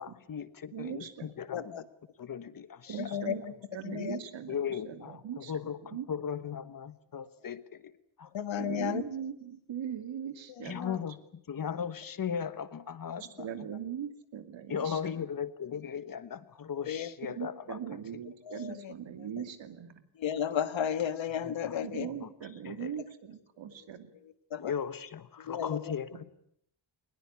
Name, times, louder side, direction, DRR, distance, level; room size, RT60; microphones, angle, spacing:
voice 1, 0.0-1.8 2.2-3.0 4.5-7.9 8.2-8.3 10.6-11.2 11.5-13.3 14.7-17.8 21.4-21.8 22.2-22.3 22.6-22.9 24.6-26.2, left 7 dB, 45° left, 15 dB, 1.2 m, -37 dB
voice 2, 0.7-1.3 2.9-3.4 3.7-5.5 5.9-6.0 8.6-11.1 13.2-15.2 17.2-19.9 21.8-24.1, right 9 dB, 70° right, 9 dB, 2.7 m, -40 dB
voice 3, 1.5-1.8 3.0-3.5 3.8-4.2 8.3-9.0 10.6-11.0 16.9-17.1 18.5-18.9 20.2-22.1 24.5-24.7 25.4-25.9, left 9 dB, 75° left, 13 dB, 1.6 m, -33 dB
22.5 x 20.5 x 9.6 m, 0.72 s
wide cardioid pair, 175°, 46 cm